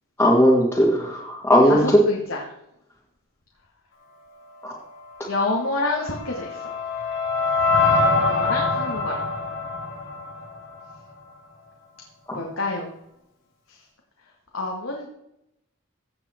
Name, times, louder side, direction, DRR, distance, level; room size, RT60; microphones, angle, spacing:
voice 1, 0.2-1.9, equal, 10° left, -5 dB, 2.2 m, -17 dB
voice 2, 1.6-2.4 5.3-6.6 8.2-9.2 12.3-12.9 14.5-15.1, left 2 dB, 90° left, -1 dB, 2.2 m, -28 dB
sound 1, 5.8-11.0, left 3 dB, 65° left, 2.9 m, -24 dB
16.0 x 8.1 x 4.5 m, 0.82 s
head